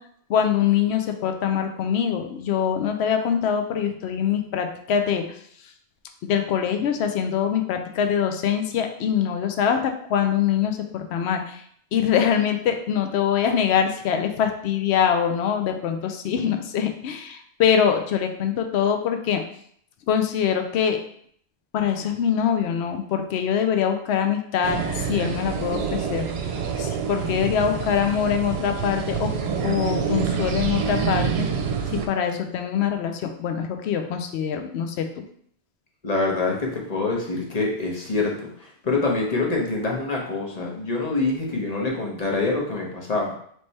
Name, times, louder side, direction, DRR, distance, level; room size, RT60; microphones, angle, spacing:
voice 1, 0.3-5.2 6.2-11.6 11.9-19.4 20.1-21.0 21.7-26.2 26.7-29.3 29.6-31.5 32.1-35.1, left 8 dB, 75° left, 5 dB, 0.8 m, -23 dB
sound 1, 24.6-32.1, right 7 dB, 75° right, 0.8 m, -27 dB
voice 2, 36.0-43.3, left 3 dB, 40° left, -1 dB, 0.9 m, -25 dB
3.3 x 3.2 x 4.1 m, 0.63 s
omnidirectional pair, 1.1 m